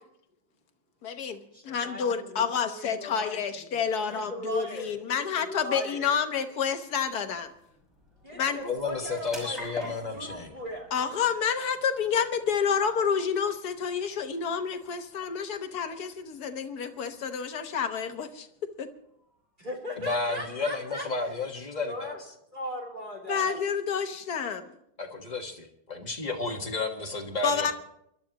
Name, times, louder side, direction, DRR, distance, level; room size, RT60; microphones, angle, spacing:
voice 1, 1.0-7.5 8.3-8.6 10.9-18.5 18.8-18.9 23.3-24.7 27.4-27.7, left 7 dB, 55° left, 7 dB, 1.5 m, -29 dB
voice 2, 1.5-6.1 8.2-10.9 19.6-21.4 21.8-22.2 22.5-23.6, equal, 20° right, -2 dB, 3.3 m, -39 dB
sound 1, 6.2-20.7, equal, ahead, 5.9 m, -51 dB
voice 3, 8.6-10.5 19.9-22.1 25.0-27.7, left 3 dB, 25° left, 2 dB, 1.4 m, -32 dB
28.0 x 12.0 x 3.0 m, 0.74 s
omnidirectional pair, 2.2 m